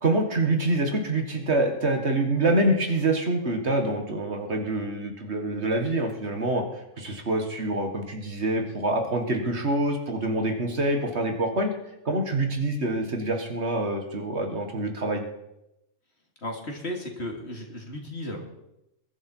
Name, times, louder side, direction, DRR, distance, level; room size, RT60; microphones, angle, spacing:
voice 1, 0.0-6.6 7.0-11.7 12.1-15.2, right 2 dB, 55° right, 4 dB, 2.0 m, -26 dB
voice 2, 16.4-18.4, left 1 dB, 55° left, 1 dB, 3.0 m, -34 dB
21.5 x 11.5 x 4.6 m, 0.89 s
omnidirectional pair, 1.4 m